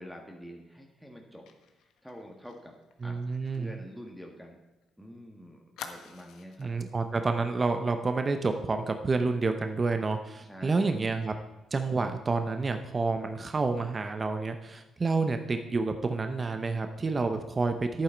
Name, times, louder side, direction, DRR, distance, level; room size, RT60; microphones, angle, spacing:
voice 1, 0.0-1.5 2.0-2.7 3.0-3.2 3.5-4.6 5.0-6.7 10.4-11.1, equal, ahead, 0 dB, 1.6 m, -46 dB
Fire, 1.5-4.9 5.2-5.3 5.8-6.7 7.1-7.3 7.6-7.9, left 7 dB, 85° left, 1.0 m, -49 dB
voice 2, 3.0-3.7 6.6-11.3 11.7-18.0, right 3 dB, 30° right, 7 dB, 0.8 m, -29 dB
11.0 x 8.9 x 4.5 m, 1.0 s
cardioid pair, 90°, 0 cm